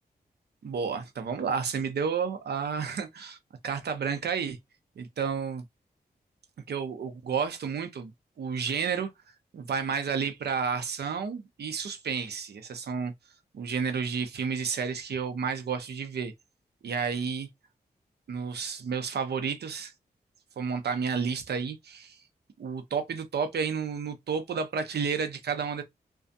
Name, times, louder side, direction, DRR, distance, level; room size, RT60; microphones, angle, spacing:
voice 1, 0.6-3.4 3.6-4.6 5.0-5.6 6.7-8.1 8.4-9.1 9.5-13.1 13.5-16.3 16.8-17.5 18.3-19.9 20.6-22.2 22.6-25.8, right 6 dB, 75° right, 0.6 m, -31 dB
2.4 x 2.3 x 2.5 m
cardioid pair, 45°, 17 cm